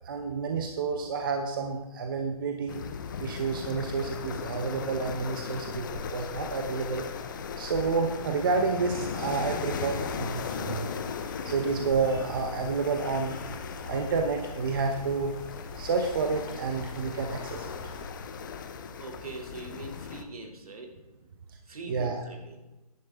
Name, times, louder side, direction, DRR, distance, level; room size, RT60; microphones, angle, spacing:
voice 1, 0.0-2.8 3.2-7.0 7.6-10.9 11.4-13.5 13.9-15.3 15.8-17.7 21.9-22.2, right 4 dB, 35° right, 5 dB, 0.9 m, -29 dB
sound 1, 2.7-20.2, left 6 dB, 30° left, 0.7 m, -38 dB
sound 2, 9.2-18.1, left 2 dB, 15° left, 2.3 m, -47 dB
voice 2, 19.0-20.9 21.7-22.6, right 3 dB, 70° right, 2 dB, 2.7 m, -42 dB
10.5 x 10.5 x 3.5 m, 1.0 s
hypercardioid pair, 155°, 19 cm